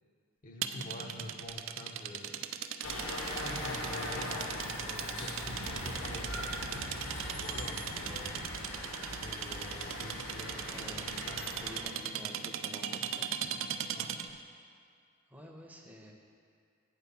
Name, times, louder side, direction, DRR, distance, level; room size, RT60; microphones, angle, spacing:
voice 1, 0.4-2.4 3.4-8.4 9.0-11.6 11.9-12.0 12.9-13.0 13.9-14.1, left 1 dB, 40° left, 2 dB, 0.6 m, -47 dB
sound 1, 0.6-14.4, right 9 dB, 65° right, 0.4 m, -39 dB
sound 2, 2.8-11.8, left 1 dB, 85° left, 1.4 m, -40 dB
voice 2, 10.7-11.1 11.6-13.3 15.3-16.1, equal, 5° right, 0 dB, 0.7 m, -49 dB
8.2 x 4.4 x 6.9 m, 2.2 s
head